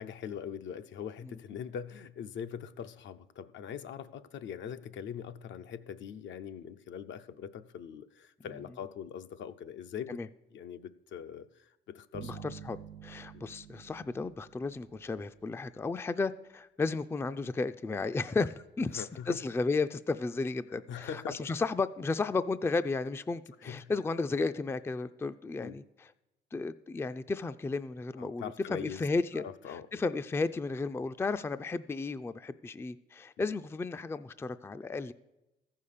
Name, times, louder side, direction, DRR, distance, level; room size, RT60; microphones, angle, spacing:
voice 1, 0.0-10.2 10.5-12.5 13.3-13.5 18.9-19.4 20.7-21.5 23.6-23.9 25.6-25.8 28.2-29.1 29.3-30.0 33.4-33.5, left 8 dB, 70° left, 10 dB, 0.6 m, -42 dB
sound 1, 12.1-15.5, right 10 dB, 65° right, 0.6 m, -49 dB
voice 2, 12.2-12.8 13.0-25.8 26.5-35.1, left 3 dB, 10° left, 12 dB, 0.3 m, -33 dB
14.0 x 5.6 x 6.6 m, 0.96 s
cardioid pair, 90°, 20 cm